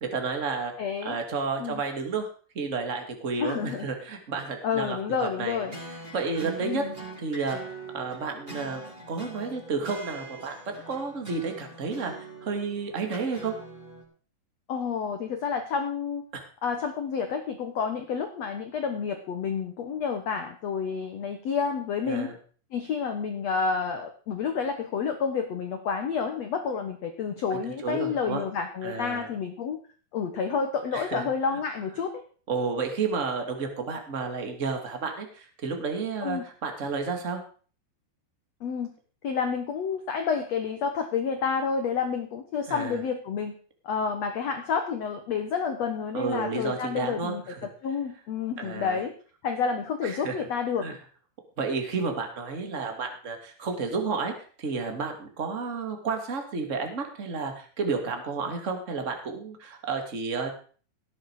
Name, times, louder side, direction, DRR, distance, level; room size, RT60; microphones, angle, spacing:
voice 1, 0.0-0.7 1.0-2.3 2.5-5.7 6.1-6.9 7.2-8.8 9.1-13.5 16.3-16.4 22.1-22.3 27.8-28.4 28.8-29.3 30.9-31.2 32.5-37.4 42.7-43.0 46.1-47.7 48.6-49.0 50.0-50.4 50.8-51.0 51.6-54.3 54.6-60.5, right 4 dB, 25° right, 4 dB, 1.7 m, -31 dB
voice 2, 0.8-1.2 1.6-1.8 3.4-3.9 4.6-5.7 6.6-6.9 14.7-16.2 16.6-22.3 22.7-29.8 30.1-32.2 36.2-36.4 38.6-38.9 39.2-43.5 43.8-47.4 47.8-49.1 49.4-50.9, left 6 dB, 80° left, 6 dB, 1.5 m, -29 dB
sound 1, 5.5-14.0, right 2 dB, 10° right, 5.5 m, -43 dB
17.5 x 9.4 x 4.9 m, 0.42 s
omnidirectional pair, 5.0 m